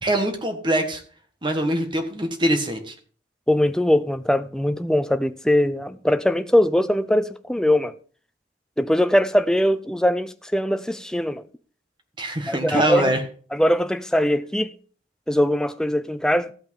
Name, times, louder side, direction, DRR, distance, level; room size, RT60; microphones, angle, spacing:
voice 1, 0.0-1.0 1.4-2.9 12.2-13.2, right 1 dB, 25° right, 1.4 m, -23 dB
voice 2, 3.5-7.9 8.8-11.4 12.5-13.1 13.5-14.7 15.3-16.5, left 1 dB, 5° left, 0.5 m, -21 dB
14.5 x 5.8 x 5.3 m
head